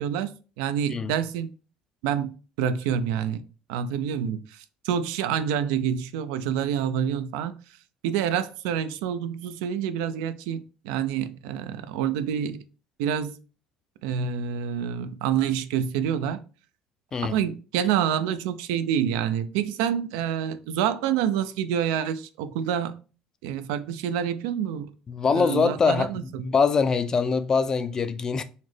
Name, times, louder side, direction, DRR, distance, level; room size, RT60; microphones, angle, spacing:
voice 1, 0.0-1.5 2.0-2.3 2.6-3.4 3.7-7.5 8.0-12.6 13.0-13.4 14.0-16.4 17.2-23.0 23.4-24.9 25.3-26.5, right 8 dB, 85° right, 0.3 m, -27 dB
voice 2, 25.1-26.1 26.4-28.4, left 5 dB, 30° left, 0.4 m, -23 dB
4.0 x 2.0 x 3.1 m
supercardioid pair, 95°, 2 cm